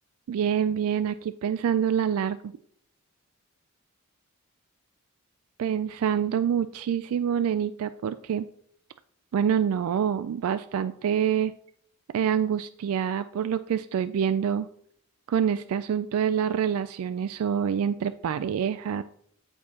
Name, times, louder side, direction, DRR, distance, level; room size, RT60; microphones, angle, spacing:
voice 1, 0.3-2.4 5.6-8.5 9.3-11.5 12.1-14.7 15.3-19.0, right 8 dB, 80° right, 12 dB, 0.3 m, -26 dB
13.0 x 4.6 x 2.8 m, 0.64 s
head